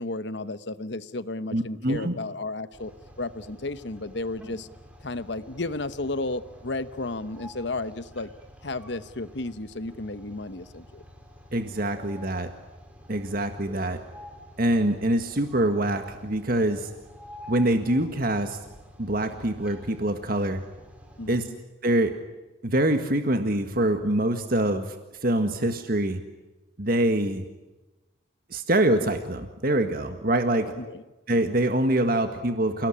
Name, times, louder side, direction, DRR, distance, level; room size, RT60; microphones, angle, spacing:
voice 1, 0.0-2.9 3.2-4.7 5.0-8.3 8.6-11.0 21.2-21.6 30.8-31.0, left 2 dB, 60° left, 13 dB, 1.1 m, -33 dB
voice 2, 1.5-2.1 11.5-12.5 13.1-14.0 14.6-16.9 17.5-18.6 19.0-20.6 21.3-21.4 21.8-22.1 22.6-25.0 25.2-26.2 26.8-27.5 28.5-30.7 31.3-32.9, right 1 dB, 50° right, 7 dB, 1.8 m, -24 dB
sound 1, 2.7-21.5, equal, 5° right, 4.9 m, -48 dB
29.5 x 18.5 x 10.0 m, 1.1 s
head